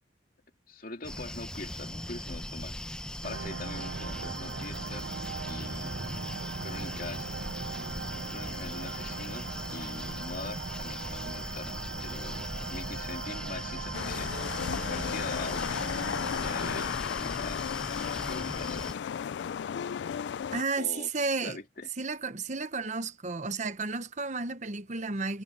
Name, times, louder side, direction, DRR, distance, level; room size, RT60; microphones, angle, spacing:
voice 1, 0.7-2.8 3.2-5.1 5.4-6.0 6.6-7.4 8.3-14.3 14.7-15.9 16.4-17.6 18.3-19.1 20.8-21.1 21.4-21.9, left 3 dB, 50° left, 2.3 m, -43 dB
sound 1, 1.0-18.9, left 1 dB, 5° left, 0.8 m, -39 dB
sound 2, 3.2-16.9, right 5 dB, 80° right, 0.6 m, -40 dB
sound 3, 13.9-20.6, left 8 dB, 70° left, 0.3 m, -34 dB
voice 2, 20.5-21.6 22.0-25.4, right 4 dB, 40° right, 1.0 m, -32 dB
head